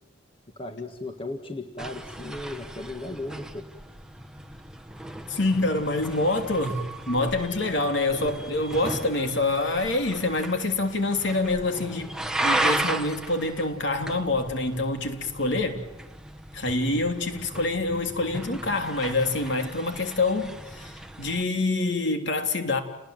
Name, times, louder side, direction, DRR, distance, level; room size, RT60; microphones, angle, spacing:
voice 1, 0.5-3.7, left 2 dB, 25° left, 1.7 m, -36 dB
sound 1, 1.8-21.4, right 2 dB, 5° right, 1.2 m, -35 dB
voice 2, 5.3-15.8 16.5-22.8, left 2 dB, 60° left, 3.4 m, -26 dB
30.0 x 20.0 x 9.3 m
head